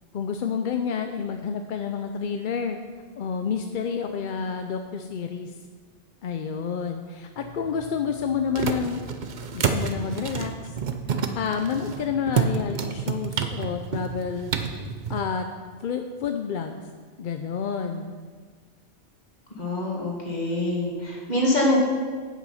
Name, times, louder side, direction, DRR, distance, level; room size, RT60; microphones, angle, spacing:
voice 1, 0.1-2.8 3.2-5.5 6.2-9.0 9.5-10.8 11.3-14.5 15.1-15.5 15.8-16.8 17.2-18.1, left 6 dB, 55° left, 6 dB, 0.6 m, -29 dB
sound 1, 7.4-15.2, right 6 dB, 50° right, 0.7 m, -29 dB
voice 2, 19.6-21.8, left 1 dB, 40° left, -3 dB, 2.3 m, -25 dB
8.8 x 8.3 x 5.6 m, 1.5 s
omnidirectional pair, 1.2 m